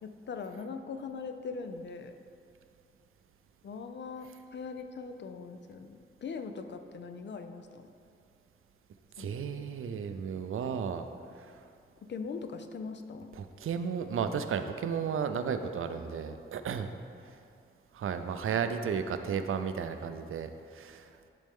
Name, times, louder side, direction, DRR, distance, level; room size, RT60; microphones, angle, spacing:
voice 1, 0.0-2.2 3.6-7.9 9.2-9.3 9.6-9.7 12.0-13.3, left 5 dB, 60° left, 7 dB, 0.5 m, -41 dB
voice 2, 9.2-11.1 11.4-11.5 13.3-16.9 17.9-21.2, right 7 dB, 80° right, 8 dB, 0.5 m, -34 dB
10.5 x 4.2 x 3.6 m, 2.4 s
wide cardioid pair, 140°, 21 cm